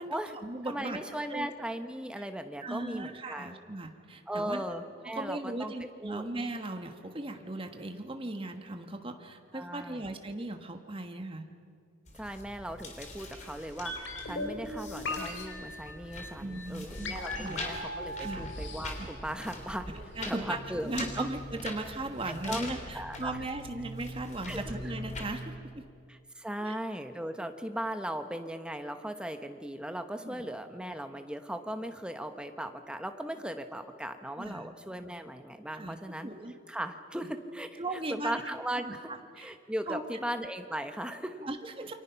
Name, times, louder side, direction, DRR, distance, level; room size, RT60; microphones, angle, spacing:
voice 1, 0.0-1.0 1.3-1.5 2.2-2.3 2.6-4.6 5.0-11.5 16.4-17.6 18.2-18.5 19.0-19.1 19.9-20.6 20.8-25.8 26.6-26.8 30.2-30.4 34.4-34.7 35.7-36.5 37.8-38.4 38.8-39.5 39.9-40.0 41.4-41.9, right 2 dB, 25° right, 5 dB, 1.3 m, -38 dB
voice 2, 0.6-3.7 4.3-5.7 6.0-6.2 9.5-10.1 12.1-19.9 20.3-20.9 21.2-21.3 21.6-21.7 22.5-23.4 24.5-24.6 26.1-36.3 36.7-37.8 38.1-39.1 39.4-41.4, right 1 dB, 5° right, 7 dB, 1.1 m, -38 dB
sound 1, 12.1-25.3, left 1 dB, 40° left, 3.5 m, -43 dB
sound 2, 13.9-19.9 20.2-20.3, left 1 dB, 70° left, 2.8 m, -39 dB
28.5 x 24.5 x 5.8 m, 2.3 s
head